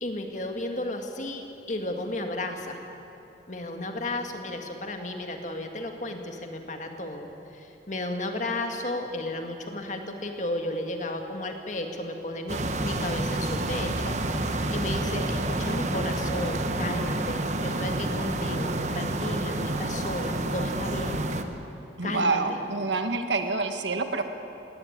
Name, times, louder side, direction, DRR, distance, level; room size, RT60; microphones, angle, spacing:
voice 1, 0.0-2.8 3.5-21.3 22.0-22.6, left 1 dB, 40° left, 4 dB, 2.0 m, -33 dB
sound 1, 12.5-21.4, right 2 dB, 40° right, 1.2 m, -29 dB
voice 2, 22.0-24.2, right 3 dB, 85° right, 7 dB, 1.6 m, -27 dB
18.0 x 18.0 x 9.4 m, 3.0 s
head